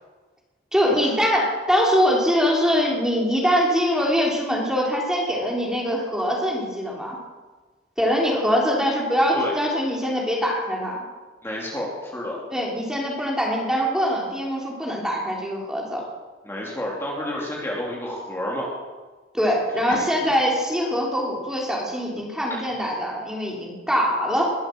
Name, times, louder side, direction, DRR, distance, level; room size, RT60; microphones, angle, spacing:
voice 1, 0.7-7.2 8.0-11.0 12.5-16.0 19.3-24.5, equal, 5° right, -2 dB, 3.1 m, -23 dB
voice 2, 11.4-12.4 16.4-18.7 19.9-20.0, left 1 dB, 15° left, -3 dB, 2.9 m, -30 dB
21.5 x 8.7 x 7.7 m, 1.3 s
head